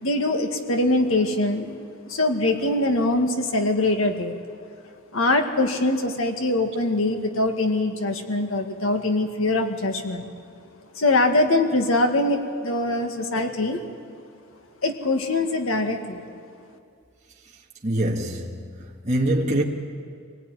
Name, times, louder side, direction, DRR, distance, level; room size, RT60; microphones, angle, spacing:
voice 1, 0.0-4.4 5.1-10.3 10.9-13.8 14.8-16.3, left 2 dB, 70° left, 2.0 m, -23 dB
voice 2, 17.8-18.6 19.1-19.6, right 1 dB, 35° right, 1.8 m, -23 dB
24.0 x 18.5 x 9.3 m
head